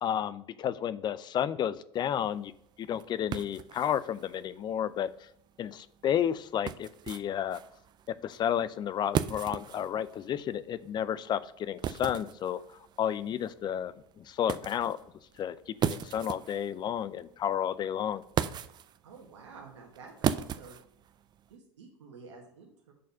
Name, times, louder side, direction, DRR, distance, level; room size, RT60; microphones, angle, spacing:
voice 1, 0.0-2.5 2.8-5.1 5.6-7.6 8.1-12.6 13.0-15.0 15.4-18.2, left 9 dB, 30° left, 17 dB, 0.4 m, -32 dB
sound 1, 2.0-21.6, right 9 dB, 30° right, 0.4 m, -38 dB
voice 2, 19.0-20.8 21.5-22.9, right 4 dB, 90° right, -1 dB, 1.3 m, -50 dB
6.5 x 4.1 x 5.6 m, 0.73 s
hypercardioid pair, 100°, 14 cm